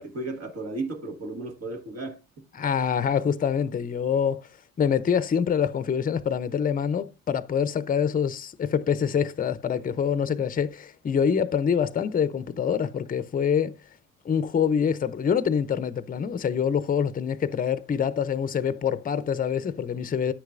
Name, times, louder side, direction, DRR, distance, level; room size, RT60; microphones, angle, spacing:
voice 1, 0.0-2.2, right 2 dB, 55° right, 1.5 m, -34 dB
voice 2, 2.5-4.5 4.8-13.8 14.2-20.3, left 7 dB, 30° left, 0.5 m, -25 dB
9.5 x 6.4 x 2.5 m
cardioid pair, 90°, 30 cm